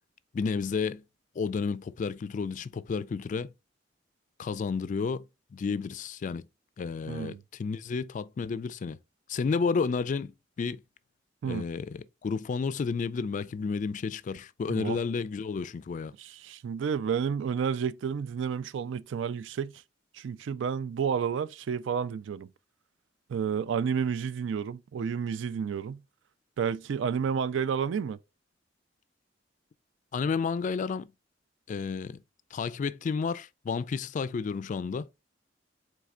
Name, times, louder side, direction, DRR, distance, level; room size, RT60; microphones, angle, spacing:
voice 1, 0.3-1.0 1.4-3.5 4.4-5.3 5.5-6.4 6.8-9.0 9.3-10.8 11.4-16.1 30.1-31.1 31.7-32.2 32.5-35.1, left 5 dB, 45° left, 0.3 m, -31 dB
voice 2, 7.1-7.4 11.4-11.6 14.7-15.0 16.2-19.7 20.1-22.5 23.3-26.0 26.6-28.2, right 7 dB, 85° right, 0.3 m, -30 dB
4.3 x 3.2 x 3.6 m
head